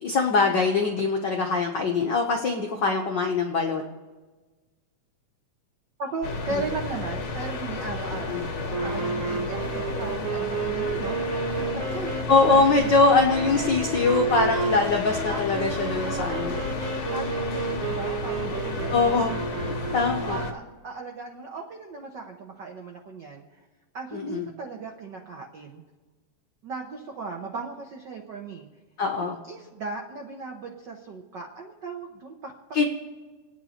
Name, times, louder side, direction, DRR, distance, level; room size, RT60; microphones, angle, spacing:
voice 1, 0.0-3.8 8.3-8.4 12.3-16.6 18.9-19.4 19.7-20.4 24.1-24.5 29.0-29.4 32.7-32.8, left 4 dB, 85° left, 1 dB, 0.9 m, -23 dB
voice 2, 6.0-11.2 11.6-12.9 13.5-13.6 14.0-14.1 14.9-15.4 16.0-16.6 17.1-19.1 19.8-23.6 23.9-25.8 26.6-28.7 29.2-32.5, right 4 dB, 85° right, 1 dB, 0.9 m, -37 dB
sound 1, 6.2-20.5, left 3 dB, 60° left, 1.0 m, -32 dB
sound 2, 8.7-20.5, right 5 dB, 60° right, 1.9 m, -32 dB
27.5 x 9.4 x 4.4 m, 1.3 s
omnidirectional pair, 3.6 m